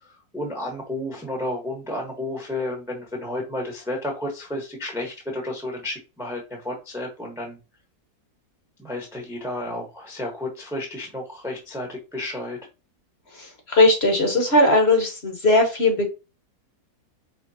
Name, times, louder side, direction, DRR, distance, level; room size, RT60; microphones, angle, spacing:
voice 1, 0.0-7.6 8.8-12.6, left 1 dB, ahead, 1 dB, 1.0 m, -32 dB
voice 2, 13.4-16.1, left 2 dB, 45° left, 3 dB, 1.5 m, -19 dB
5.2 x 3.4 x 2.7 m, 0.29 s
omnidirectional pair, 1.7 m